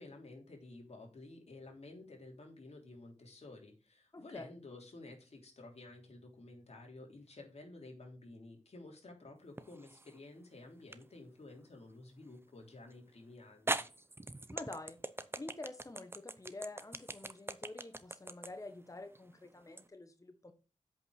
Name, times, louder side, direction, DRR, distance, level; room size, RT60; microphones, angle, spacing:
voice 1, 0.0-13.9, left 2 dB, 55° left, 1 dB, 3.3 m, -52 dB
voice 2, 4.1-4.4 14.5-15.0 15.4-20.5, left 2 dB, 25° left, 8 dB, 1.2 m, -48 dB
sound 1, 9.6-10.2 10.9-11.0 12.9-13.0 13.7-19.9, right 2 dB, 20° right, 0.8 m, -41 dB
8.2 x 5.3 x 6.5 m, 0.33 s
cardioid pair, 55°, 13 cm